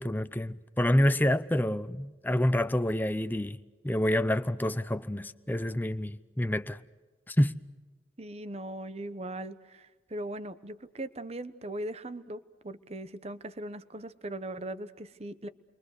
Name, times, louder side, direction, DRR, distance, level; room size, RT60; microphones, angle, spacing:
voice 1, 0.0-3.6 3.8-6.8 7.3-7.5, left 1 dB, 10° left, 0.7 m, -27 dB
voice 2, 8.2-15.5, right 1 dB, 35° right, 1.0 m, -39 dB
29.5 x 23.0 x 6.6 m
head